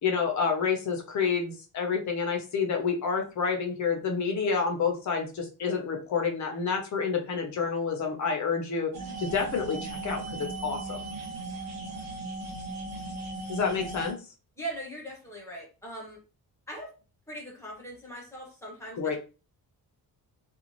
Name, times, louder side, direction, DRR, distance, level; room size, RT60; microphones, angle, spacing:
voice 1, 0.0-8.9 9.2-11.0 13.5-14.2 18.9-19.2, left 5 dB, 50° left, 3 dB, 0.7 m, -29 dB
sound 1, 8.9-14.1, right 3 dB, 80° right, 1.0 m, -37 dB
voice 2, 14.6-16.2 16.7-16.9 17.3-19.2, right 1 dB, 5° left, -2 dB, 0.9 m, -40 dB
2.5 x 2.4 x 3.0 m, 0.33 s
wide cardioid pair, 180°, 37 cm